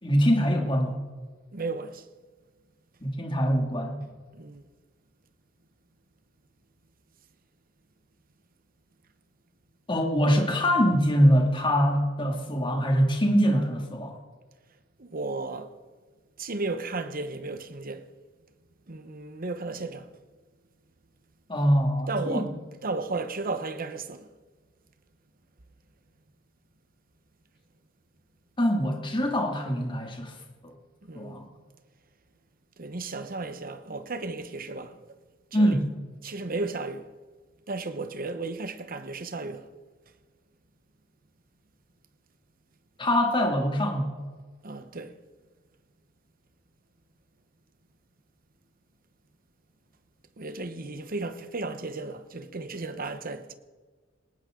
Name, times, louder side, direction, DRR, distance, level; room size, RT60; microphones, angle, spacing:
voice 1, 0.0-1.0 3.0-4.0 9.9-14.2 21.5-22.5 28.6-30.3 30.6-30.7 31.1-31.5 35.5-35.8 43.0-44.1, equal, 25° left, 2.5 m, -23 dB
voice 2, 1.5-2.1 4.3-4.7 15.0-15.7 16.4-18.1 18.9-20.1 22.1-22.5 22.8-24.3 31.0-31.4 32.8-35.1 35.5-35.8 36.2-37.1 37.7-39.7 44.6-45.1 50.4-53.5, right 3 dB, 45° right, 1.1 m, -34 dB
19.5 x 18.5 x 3.9 m
head